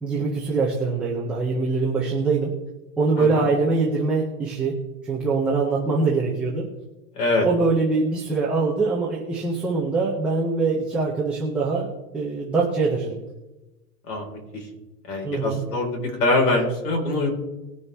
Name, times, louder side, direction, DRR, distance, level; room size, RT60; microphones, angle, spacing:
voice 1, 0.0-2.5 3.0-4.8 5.0-6.7 7.4-13.2 15.2-15.6, right 3 dB, 5° right, -5 dB, 0.5 m, -23 dB
voice 2, 7.2-7.5 14.1-14.7 15.1-17.3, left 2 dB, 75° left, 1 dB, 4.5 m, -24 dB
20.5 x 6.9 x 3.4 m, 1.0 s
supercardioid pair, 165°, 47 cm